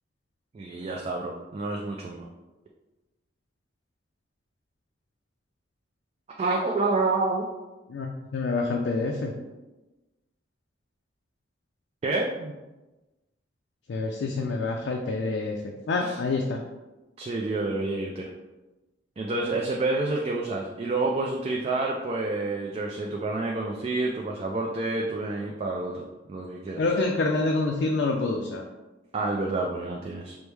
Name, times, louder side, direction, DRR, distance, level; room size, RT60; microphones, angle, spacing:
voice 1, 0.5-2.3 6.4-7.5 12.0-12.5 16.0-16.2 17.2-18.3 19.2-26.8 29.1-30.4, right 3 dB, 35° right, 0 dB, 0.3 m, -28 dB
voice 2, 7.9-9.3 13.9-15.6 15.9-16.6 26.8-28.6, left 3 dB, 70° left, 1 dB, 0.4 m, -27 dB
4.5 x 2.1 x 3.3 m, 1.1 s
head